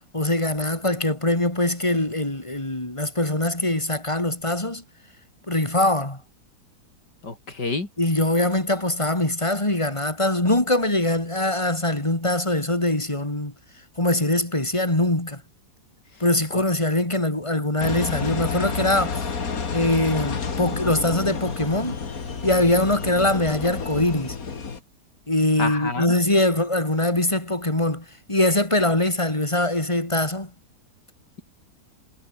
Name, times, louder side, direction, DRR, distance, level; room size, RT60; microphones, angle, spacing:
voice 1, 0.1-4.8 5.5-6.2 8.0-13.5 14.0-15.4 16.2-19.3 19.7-22.0 22.4-24.4 25.3-30.5, left 1 dB, 15° left, 3.5 m, -22 dB
voice 2, 7.2-7.9 16.5-16.6 25.6-26.1, left 3 dB, 80° left, 5.2 m, -28 dB
Engine, 17.8-24.8, left 5 dB, 55° left, 2.6 m, -30 dB
omnidirectional pair, 1.8 m